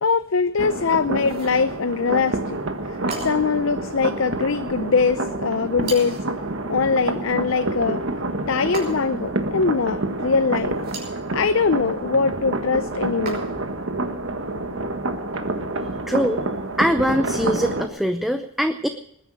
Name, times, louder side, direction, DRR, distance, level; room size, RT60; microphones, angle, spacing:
voice 1, 0.0-2.6 2.9-6.2 6.7-8.0 8.5-10.7 11.3-13.4, left 5 dB, 65° left, 11 dB, 0.6 m, -22 dB
sound 1, 0.6-17.9, right 2 dB, 65° right, 1.6 m, -28 dB
sound 2, 1.2-1.6 3.1-3.6 5.8-6.3 8.7-9.3 10.7-11.2 13.3-13.8, right 3 dB, 50° right, 5.5 m, -35 dB
voice 2, 16.1-16.4 16.8-18.9, equal, ahead, 7 dB, 0.7 m, -22 dB
20.5 x 10.0 x 6.4 m, 0.74 s
head